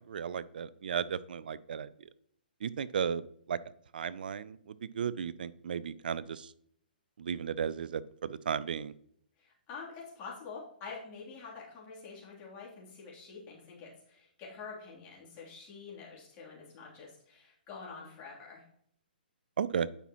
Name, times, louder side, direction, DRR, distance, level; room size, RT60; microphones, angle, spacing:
voice 1, 0.0-2.1 2.6-3.6 3.9-6.5 7.2-8.9 19.6-19.9, right 7 dB, 65° right, 18 dB, 0.4 m, -35 dB
voice 2, 9.4-18.6, left 5 dB, 30° left, -5 dB, 2.9 m, -47 dB
10.0 x 5.7 x 2.9 m, 0.68 s
hypercardioid pair, 130°, 5 cm